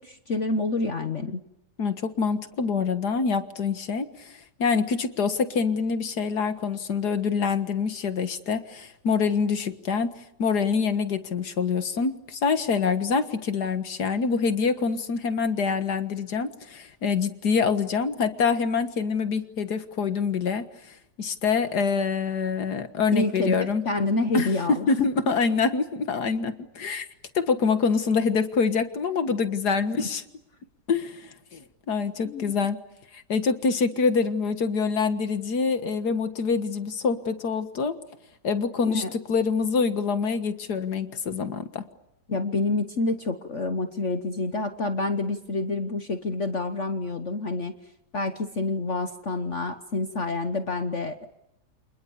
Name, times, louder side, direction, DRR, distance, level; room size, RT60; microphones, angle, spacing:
voice 1, 0.0-1.4 23.1-23.5 23.8-24.9 25.3-25.4 30.0-30.1 32.2-32.5 38.9-39.1 42.3-47.7 48.1-51.3, left 2 dB, 45° left, 8 dB, 1.4 m, -28 dB
voice 2, 1.8-10.1 10.4-23.8 24.3-27.1 27.4-30.2 30.9-32.8 33.1-38.0 38.4-41.9, left 5 dB, 60° left, 9 dB, 2.1 m, -26 dB
30.0 x 27.0 x 7.1 m, 0.84 s
omnidirectional pair, 1.9 m